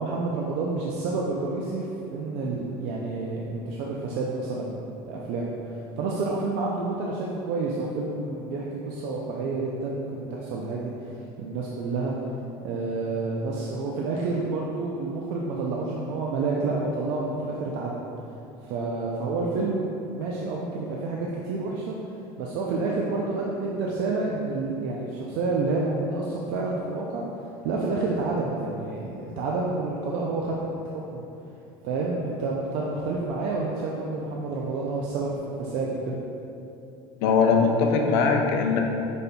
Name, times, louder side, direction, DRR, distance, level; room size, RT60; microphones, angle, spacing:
voice 1, 0.0-5.5 6.0-12.2 12.6-18.0 18.6-21.9 22.4-27.3 27.6-31.3 31.8-36.2, right 3 dB, 60° right, -3 dB, 0.4 m, -29 dB
voice 2, 37.2-38.8, left 5 dB, 90° left, 2 dB, 0.5 m, -21 dB
5.1 x 4.2 x 2.2 m, 2.8 s
cardioid pair, 175°, 12 cm